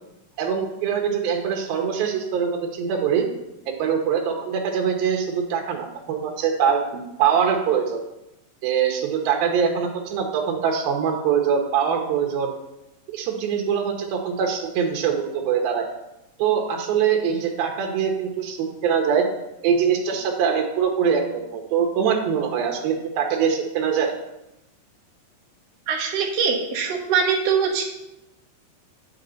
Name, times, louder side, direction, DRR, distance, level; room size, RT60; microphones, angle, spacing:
voice 1, 0.4-3.3 3.7-8.0 8.6-12.5 13.1-15.9 16.4-19.3 19.6-24.1, right 7 dB, 85° right, 2 dB, 3.0 m, -23 dB
voice 2, 25.9-27.8, right 6 dB, 70° right, -1 dB, 2.8 m, -22 dB
9.2 x 8.3 x 4.0 m, 0.90 s
omnidirectional pair, 4.1 m